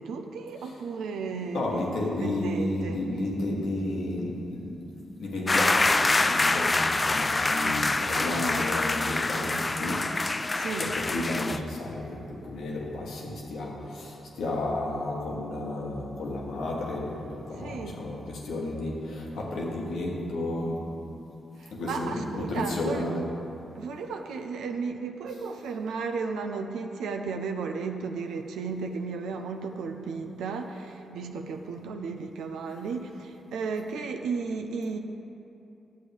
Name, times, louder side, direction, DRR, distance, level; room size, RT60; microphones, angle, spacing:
voice 1, 0.0-2.0 2.2-3.0 7.6-7.8 10.5-10.9 17.6-18.0 21.6-23.0 23.8-35.0, right 4 dB, 85° right, 4 dB, 0.5 m, -34 dB
voice 2, 1.5-4.8 5.2-10.2 10.8-20.9 21.7-23.3 30.4-30.5 31.1-31.2, left 1 dB, 80° left, -2 dB, 1.4 m, -32 dB
sound 1, 5.5-11.6, left 2 dB, 30° left, 0.3 m, -26 dB
11.0 x 7.5 x 3.5 m, 2.8 s
supercardioid pair, 50°, 0 cm